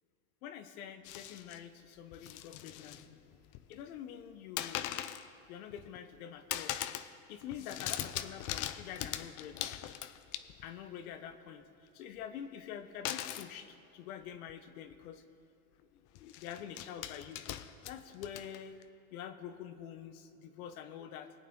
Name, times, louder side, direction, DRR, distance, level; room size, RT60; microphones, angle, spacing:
voice 1, 0.4-4.9 5.5-6.8 7.3-9.8 10.6-11.6 11.9-15.2 15.9-17.4 17.9-18.7 19.1-21.3, left 9 dB, 80° left, 10 dB, 1.1 m, -46 dB
sound 1, 1.0-1.6 2.1-3.0 3.3-3.9 4.6-5.3 5.7-6.2 6.5-7.1 7.4-10.8 13.1-13.5 14.5-14.6 14.9-15.1 16.2-18.8, left 12 dB, 45° left, 0.6 m, -41 dB
21.5 x 8.5 x 3.7 m, 2.7 s
supercardioid pair, 110°, 42 cm